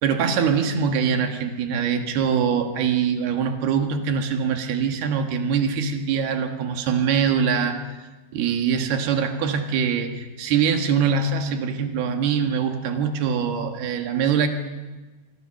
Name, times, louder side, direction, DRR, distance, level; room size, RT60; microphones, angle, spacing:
voice 1, 0.0-8.0 8.3-14.5, right 6 dB, 70° right, 6 dB, 3.3 m, -23 dB
24.5 x 24.0 x 6.4 m, 1.2 s
omnidirectional pair, 4.9 m